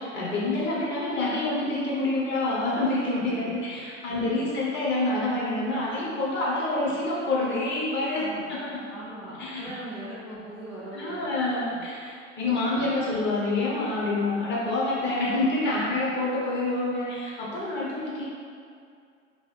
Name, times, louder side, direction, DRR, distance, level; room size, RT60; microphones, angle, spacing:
voice 1, 0.0-8.8 9.4-9.7 10.9-18.2, left 2 dB, 30° left, -6 dB, 0.9 m, -27 dB
voice 2, 3.4-3.8 4.0-4.5 8.2-8.5 8.9-11.3 11.7-11.9 12.6-13.0 15.7-15.9, right 1 dB, ahead, -12 dB, 0.4 m, -41 dB
3.0 x 2.6 x 3.3 m, 2.3 s
figure-of-eight pair, 80°, 38 cm